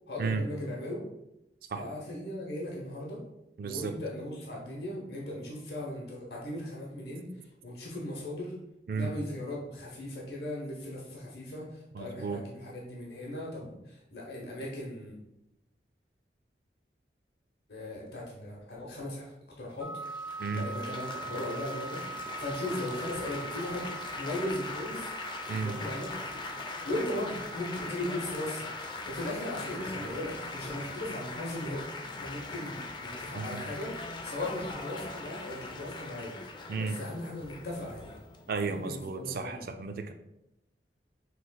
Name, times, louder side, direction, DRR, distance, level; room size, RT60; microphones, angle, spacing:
voice 1, 0.1-1.0 1.7-3.2 3.6-8.5 8.9-15.2 17.7-19.3 19.6-19.9 20.2-25.1 25.5-26.1 26.8-28.7 29.1-36.3 36.8-38.2 38.4-39.7, left 1 dB, 65° left, -3 dB, 0.9 m, -38 dB
voice 2, 3.6-3.9 8.9-9.1 11.9-12.4 20.4-20.7 25.5-25.8 33.3-33.6 36.7-37.0 38.5-40.1, right 4 dB, 55° right, 7 dB, 0.3 m, -33 dB
sound 1, 19.8-31.3, right 3 dB, 15° right, 0.6 m, -44 dB
Laughter / Applause / Chatter, 20.0-39.1, left 3 dB, 25° left, 0.4 m, -41 dB
6.2 x 3.0 x 2.2 m, 0.87 s
head